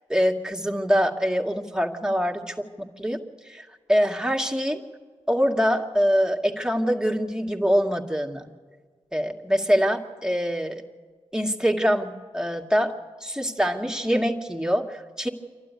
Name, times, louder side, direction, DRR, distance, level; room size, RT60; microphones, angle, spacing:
voice 1, 0.1-3.2 3.4-4.8 5.3-8.5 9.1-10.8 11.3-15.3, equal, 5° right, 2 dB, 2.3 m, -24 dB
27.5 x 12.0 x 9.7 m, 1.6 s
supercardioid pair, 40°, 12 cm